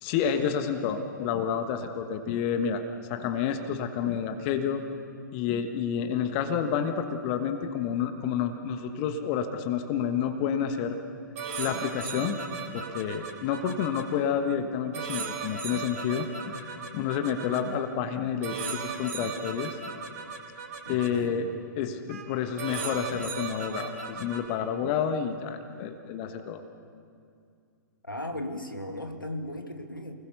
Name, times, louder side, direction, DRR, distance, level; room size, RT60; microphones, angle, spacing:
voice 1, 0.0-2.8 3.1-4.8 5.3-11.0 11.6-12.4 12.6-19.8 20.9-21.5 21.8-26.6, left 8 dB, 35° left, 7 dB, 1.4 m, -29 dB
sound 1, 11.3-14.0 14.9-17.6 18.4-21.1 22.1-22.3 22.6-24.5, right 5 dB, 45° right, 4.2 m, -36 dB
voice 2, 20.8-21.4 28.0-30.2, left 1 dB, 85° left, 5 dB, 2.1 m, -36 dB
29.0 x 20.5 x 6.8 m, 2.4 s
figure-of-eight pair, 110°, 11 cm